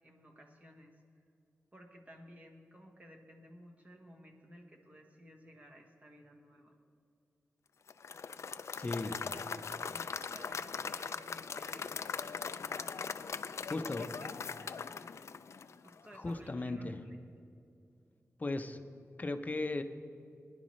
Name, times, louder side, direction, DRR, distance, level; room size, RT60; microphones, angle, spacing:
voice 1, 0.0-1.2 1.7-6.7 8.9-12.4 13.7-14.3 14.6-15.2 15.8-17.5, equal, 25° right, 2 dB, 1.2 m, -56 dB
Applause / Crowd, 7.9-16.1, left 6 dB, 65° left, 0.3 m, -40 dB
voice 2, 8.8-9.1 13.7-14.1 16.1-17.0 18.4-18.8 19.2-19.8, left 2 dB, 30° left, 8 dB, 0.7 m, -36 dB
20.0 x 10.5 x 3.2 m, 2.5 s
wide cardioid pair, 125°, 5 cm